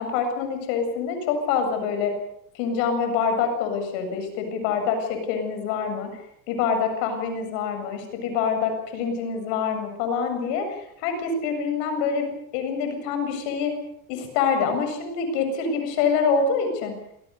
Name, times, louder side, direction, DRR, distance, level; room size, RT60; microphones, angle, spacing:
voice 1, 0.0-2.1 2.5-6.2 6.5-13.7 14.1-17.0, left 5 dB, 85° left, 6 dB, 7.6 m, -26 dB
27.0 x 20.0 x 6.9 m, 0.73 s
supercardioid pair, 110°, 47 cm